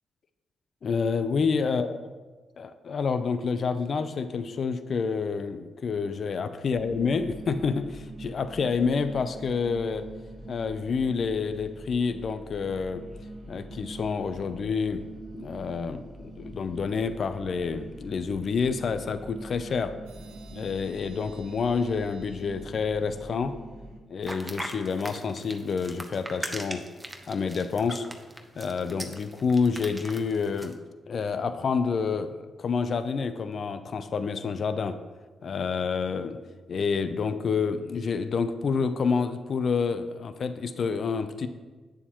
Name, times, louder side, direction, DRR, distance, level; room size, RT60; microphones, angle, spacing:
voice 1, 0.8-2.0 2.6-10.1 10.5-13.0 13.5-15.0 15.3-19.9 20.5-23.5 24.1-26.8 27.3-28.1 28.6-30.8 31.1-35.0 35.4-36.4 36.7-41.5, left 5 dB, 60° left, 11 dB, 0.5 m, -28 dB
sound 1, 6.7-24.0, right 1 dB, 55° right, 1.1 m, -44 dB
sound 2, 20.1-23.6, right 5 dB, 90° right, 1.0 m, -54 dB
sound 3, 24.2-30.7, right 1 dB, 10° right, 1.0 m, -39 dB
8.9 x 6.9 x 2.9 m, 1.3 s
hypercardioid pair, 45°, 0 cm